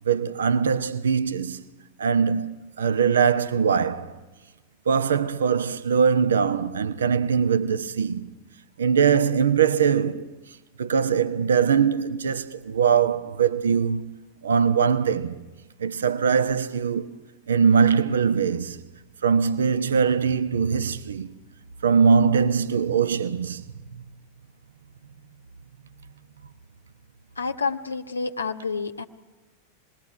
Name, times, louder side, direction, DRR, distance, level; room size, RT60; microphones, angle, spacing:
voice 1, 0.0-1.6 2.0-4.2 4.9-8.3 8.8-10.3 10.8-14.1 14.4-15.4 15.8-17.1 17.5-18.8 19.2-21.4 21.8-23.6, right 6 dB, 65° right, 1.1 m, -22 dB
voice 2, 27.4-29.0, left 4 dB, 80° left, 1.5 m, -29 dB
26.5 x 20.0 x 9.9 m
figure-of-eight pair, 90°, 0 cm